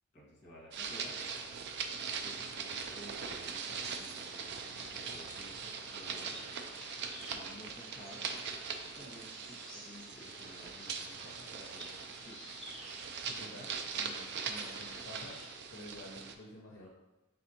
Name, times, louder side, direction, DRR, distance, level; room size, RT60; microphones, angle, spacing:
voice 1, 0.1-1.1 2.2-6.4 7.2-8.2 8.8-12.4 13.4-13.6, equal, 30° left, -4 dB, 1.3 m, -54 dB
sound 1, 0.7-16.3, right 5 dB, 50° right, 0.3 m, -41 dB
sound 2, 3.2-15.5, equal, 5° left, 1.0 m, -53 dB
voice 2, 13.3-13.7 13.9-15.4 15.7-16.9, left 1 dB, 55° left, -3 dB, 0.6 m, -50 dB
4.2 x 3.6 x 2.8 m, 1.1 s
head